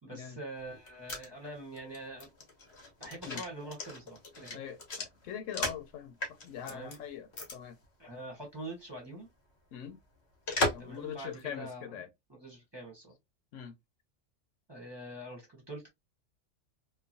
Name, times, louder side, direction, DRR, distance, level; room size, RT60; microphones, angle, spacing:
voice 1, 0.0-2.3 3.0-4.6 6.7-7.0 8.0-9.3 10.8-11.9 12.3-13.1 14.7-15.9, right 1 dB, 25° right, 0.9 m, -44 dB
sound 1, 0.7-5.9 6.2-7.0 7.3-7.6 7.8-7.9 10.5-11.0 11.3-11.4, left 2 dB, 60° left, 1.2 m, -36 dB
voice 2, 4.5-6.2 6.4-7.8 9.7-10.0 10.7-12.1 13.5-13.7, left 8 dB, 85° left, 1.0 m, -42 dB
3.0 x 2.2 x 2.5 m
omnidirectional pair, 1.3 m